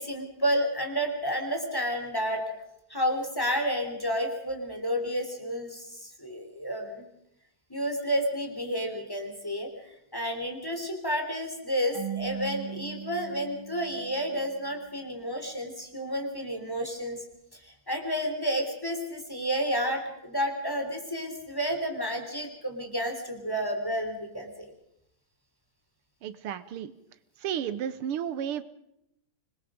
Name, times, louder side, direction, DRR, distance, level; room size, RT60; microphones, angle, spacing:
voice 1, 0.0-2.5 2.9-7.0 7.7-17.2 17.5-24.7, equal, 10° left, 4 dB, 3.7 m, -31 dB
Marimba xylophone / Wood, 11.9-14.7, right 9 dB, 50° right, 3.2 m, -39 dB
voice 2, 26.2-26.9 27.4-28.6, right 9 dB, 85° right, 14 dB, 1.9 m, -32 dB
25.5 x 21.0 x 5.2 m, 0.78 s
omnidirectional pair, 2.4 m